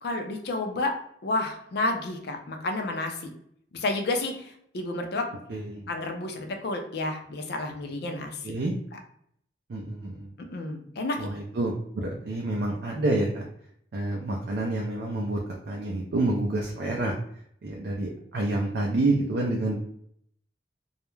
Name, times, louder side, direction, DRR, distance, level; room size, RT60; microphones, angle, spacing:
voice 1, 0.0-0.9 1.2-3.3 3.7-5.2 5.9-8.5 10.5-11.2, left 2 dB, 60° left, 4 dB, 0.4 m, -30 dB
voice 2, 5.5-5.8 8.4-8.7 9.7-10.3 11.2-13.4 13.9-15.4 15.7-17.1 17.6-19.8, right 2 dB, 60° right, -1 dB, 0.4 m, -28 dB
2.3 x 2.1 x 3.0 m, 0.69 s
head